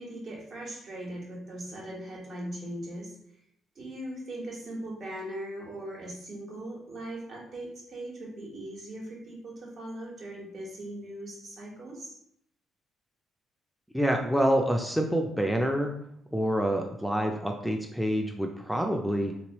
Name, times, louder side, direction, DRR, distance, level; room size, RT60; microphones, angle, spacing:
voice 1, 0.0-3.1 3.7-12.1, right 1 dB, 60° right, -3 dB, 1.4 m, -39 dB
voice 2, 13.9-15.9 16.3-19.3, equal, ahead, 2 dB, 0.4 m, -27 dB
3.4 x 3.0 x 3.0 m, 0.71 s
cardioid pair, 90°, 0 cm